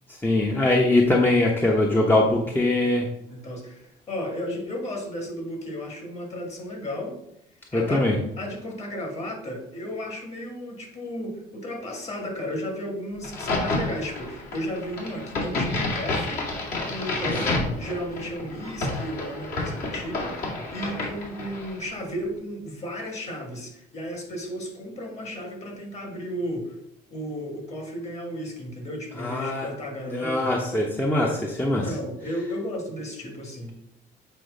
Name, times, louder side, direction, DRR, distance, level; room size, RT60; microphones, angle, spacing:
voice 1, 0.2-3.1 7.7-8.2 29.2-29.7 30.1-31.9, left 2 dB, 10° left, -1 dB, 0.8 m, -22 dB
voice 2, 3.3-7.2 7.7-8.1 8.4-16.5 16.8-26.8 27.1-30.5 31.7-33.8, equal, 40° left, 2 dB, 2.0 m, -34 dB
Crack, 13.2-21.8, left 2 dB, 60° left, 2.3 m, -30 dB
7.8 x 3.1 x 5.1 m, 0.78 s
cardioid pair, 110°, 17 cm